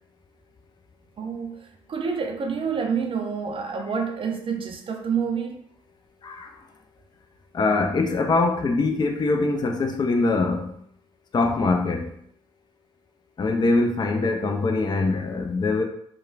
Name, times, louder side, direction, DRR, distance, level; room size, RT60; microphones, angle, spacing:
voice 1, 1.2-5.6, right 6 dB, 35° right, 0.5 m, -28 dB
voice 2, 6.2-6.6 7.5-10.7 11.3-12.2 13.4-15.8, left 3 dB, 25° left, 0.4 m, -23 dB
3.0 x 2.2 x 2.3 m
figure-of-eight pair, 50°, 16 cm